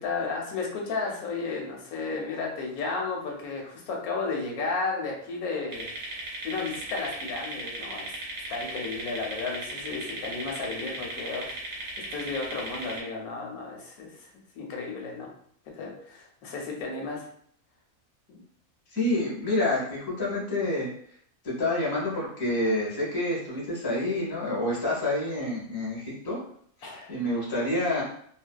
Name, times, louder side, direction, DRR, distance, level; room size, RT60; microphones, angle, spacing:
voice 1, 0.0-5.9 6.2-8.1 8.5-14.3 14.5-15.3 15.8-17.3 18.3-18.4 26.8-27.2, left 4 dB, 85° left, 0 dB, 1.1 m, -33 dB
sound 1, 5.7-13.0, right 2 dB, 55° right, 0.8 m, -37 dB
voice 2, 18.9-20.9 21.4-26.4 26.8-28.0, left 1 dB, 20° left, -5 dB, 0.7 m, -28 dB
2.5 x 2.2 x 2.2 m, 0.63 s
omnidirectional pair, 1.5 m